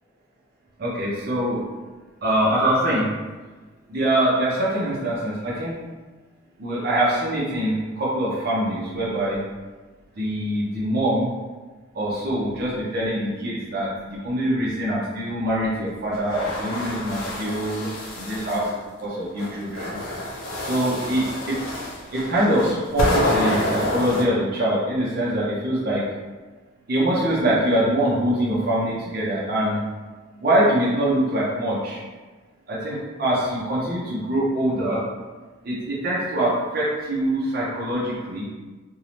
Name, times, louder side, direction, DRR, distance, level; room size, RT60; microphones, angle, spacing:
voice 1, 0.8-1.6 2.2-3.1 3.9-5.7 6.6-9.4 10.2-11.3 11.9-17.9 18.1-20.0 20.6-21.8 22.1-26.0 26.9-29.8 30.4-32.0 32.7-35.0 35.6-38.4, right 1 dB, 45° right, -7 dB, 0.5 m, -24 dB
sound 1, 16.1-18.7 19.4-24.2, left 1 dB, 80° left, 0.5 m, -28 dB
2.6 x 2.0 x 2.9 m, 1.3 s
head